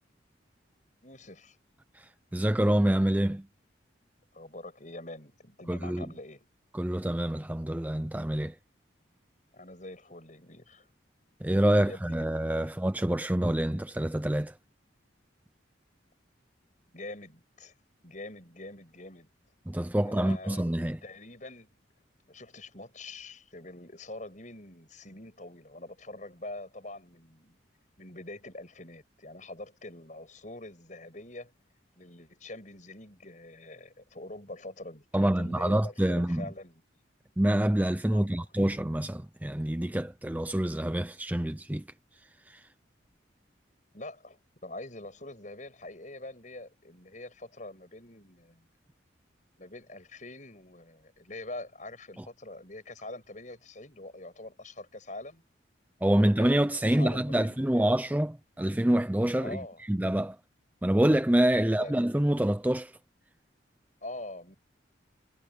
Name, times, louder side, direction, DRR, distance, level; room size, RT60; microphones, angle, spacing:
voice 1, 1.0-1.6 4.3-6.5 9.5-10.9 11.7-12.2 16.9-17.7 18.0-19.3 20.0-20.7 21.0-21.7 22.3-27.6 28.0-31.5 32.0-36.8 38.1-38.4 43.9-48.7 49.6-55.4 56.0-58.0 59.4-59.8 61.6-61.9 64.0-64.6, left 2 dB, 40° left, 6.9 m, -44 dB
voice 2, 1.9-3.5 5.7-6.1 6.7-8.6 11.4-14.6 19.7-21.0 35.1-36.5 37.4-41.9 42.5-42.7 52.2-52.3 56.0-59.6 59.9-60.4 60.8-62.9, right 1 dB, 10° right, 0.4 m, -26 dB
head